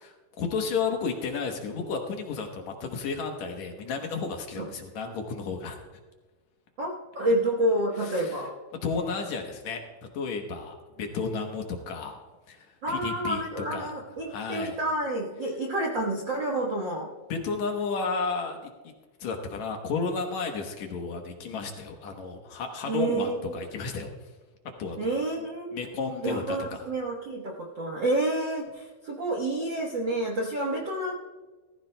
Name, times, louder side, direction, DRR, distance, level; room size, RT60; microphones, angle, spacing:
voice 1, 0.4-5.8 8.0-8.4 8.8-9.8 10.1-12.2 12.5-13.9 14.2-14.8 17.3-18.9 19.2-24.1 24.8-25.5 25.7-26.8, left 4 dB, 65° left, 3 dB, 2.1 m, -32 dB
voice 2, 6.8-8.6 12.8-17.1 22.9-23.5 25.0-25.8 26.2-31.1, right 1 dB, 60° right, -2 dB, 1.2 m, -29 dB
18.5 x 14.5 x 2.2 m, 1.3 s
omnidirectional pair, 3.8 m